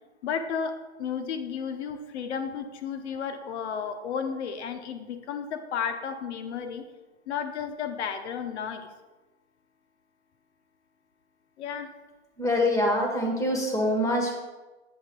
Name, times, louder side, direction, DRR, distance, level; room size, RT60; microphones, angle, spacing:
voice 1, 0.2-0.7 1.0-6.8 7.3-8.9 11.6-11.9, left 7 dB, 85° left, 8 dB, 0.7 m, -33 dB
voice 2, 12.4-14.3, left 1 dB, 10° left, 0 dB, 1.2 m, -25 dB
7.7 x 7.4 x 2.2 m, 1.2 s
hypercardioid pair, 135°, 33 cm